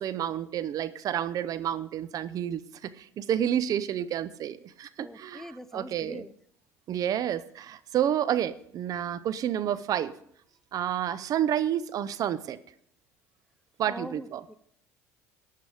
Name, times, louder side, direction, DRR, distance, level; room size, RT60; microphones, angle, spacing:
voice 1, 0.0-6.3 6.9-10.2 10.7-12.6 13.8-14.4, right 10 dB, 50° right, 0.6 m, -30 dB
voice 2, 5.0-6.4 13.9-14.5, equal, 5° left, 0.5 m, -42 dB
12.5 x 8.5 x 4.9 m
hypercardioid pair, 65°, 8 cm